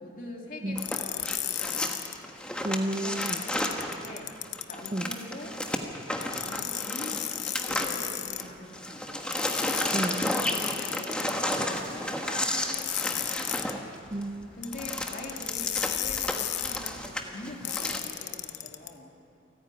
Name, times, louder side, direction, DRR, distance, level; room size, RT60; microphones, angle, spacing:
voice 1, 0.0-1.9 3.0-4.3 4.7-5.6 6.1-9.3 10.5-13.5 14.6-19.1, left 1 dB, 50° left, 0 dB, 2.9 m, -43 dB
sound 1, 0.7-8.5 8.7-18.0, left 1 dB, 5° left, 1.3 m, -33 dB
sound 2, 0.8-2.1 3.2-4.9 6.2-8.4 9.3-11.6 12.7-13.7 14.6-16.9 17.6-18.9, left 13 dB, 75° left, 0.9 m, -34 dB
voice 2, 2.6-3.4 4.9-5.1 9.9-10.3 14.1-14.6, right 1 dB, 30° right, 12 dB, 0.5 m, -31 dB
28.5 x 10.0 x 9.2 m, 2.8 s
head